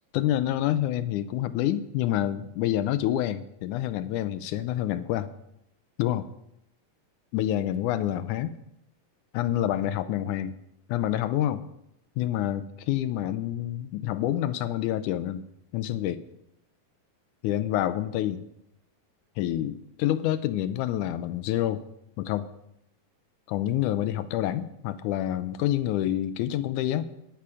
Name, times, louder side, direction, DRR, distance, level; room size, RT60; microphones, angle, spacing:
voice 1, 0.1-5.3 6.0-6.3 7.3-8.6 9.3-10.6 10.9-11.6 12.2-15.4 15.7-16.2 17.4-18.5 19.4-21.8 22.2-22.5 23.5-27.0, left 12 dB, 80° left, 13 dB, 1.9 m, -27 dB
12.5 x 10.0 x 4.9 m, 0.81 s
omnidirectional pair, 3.9 m